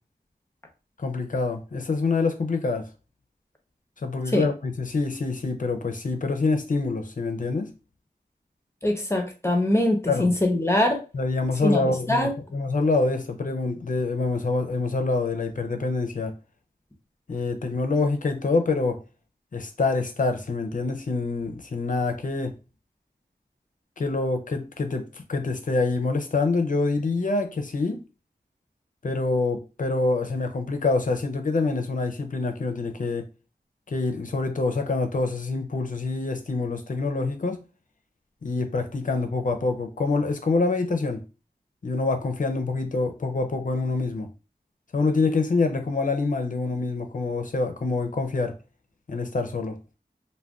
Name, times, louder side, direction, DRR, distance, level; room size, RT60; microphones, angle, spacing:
voice 1, 1.0-2.9 4.0-7.7 10.1-10.3 11.1-16.3 17.3-19.0 19.5-22.5 24.0-28.0 29.0-33.3 33.9-37.6 38.4-41.2 41.8-44.3 44.9-48.5 49.1-49.8, left 3 dB, 50° left, 0.6 m, -26 dB
voice 2, 8.8-11.0 11.6-12.3, left 1 dB, 15° left, 0.7 m, -23 dB
2.5 x 2.2 x 3.4 m
wide cardioid pair, 70°, 17 cm